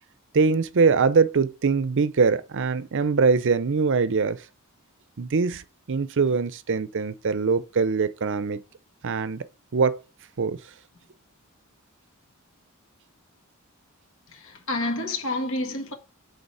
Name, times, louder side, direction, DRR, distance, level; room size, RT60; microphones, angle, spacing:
voice 1, 0.3-4.4 5.2-5.6 5.9-8.6 9.0-9.5 9.7-10.0 10.4-10.6, right 5 dB, 60° right, 0.6 m, -22 dB
voice 2, 14.3-15.9, left 2 dB, 65° left, 1.6 m, -29 dB
8.1 x 3.9 x 5.4 m
head